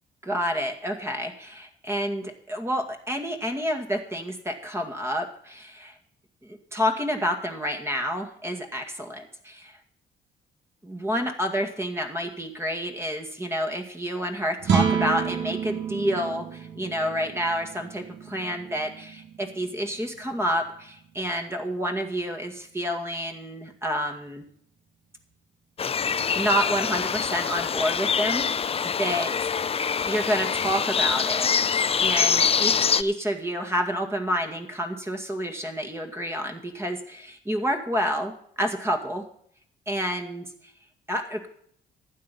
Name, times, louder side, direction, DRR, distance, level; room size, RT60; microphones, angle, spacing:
voice 1, 0.2-5.9 6.4-9.8 10.8-24.4 26.4-29.3 30.1-31.5 32.0-39.2 39.9-40.5 41.1-41.5, equal, 15° right, 4 dB, 2.0 m, -29 dB
sound 1, 14.6-21.0, right 7 dB, 60° right, 2.0 m, -30 dB
sound 2, 25.8-33.0, left 6 dB, 30° left, 0.5 m, -25 dB
12.0 x 8.7 x 5.4 m, 0.64 s
cardioid pair, 90°, 20 cm